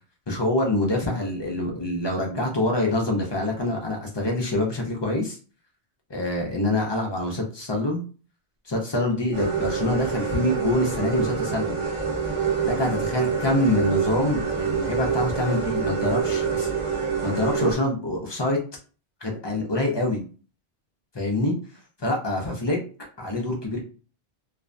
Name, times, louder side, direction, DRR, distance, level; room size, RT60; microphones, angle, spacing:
voice 1, 0.3-5.4 6.1-8.0 8.7-11.8 12.6-16.7 17.2-18.6 19.2-20.2 21.1-21.5 22.0-22.8 23.2-23.8, left 1 dB, 45° left, 0 dB, 0.3 m, -25 dB
sound 1, 9.3-17.8, right 6 dB, 30° right, 0.9 m, -26 dB
2.4 x 2.1 x 2.5 m, 0.38 s
omnidirectional pair, 1.1 m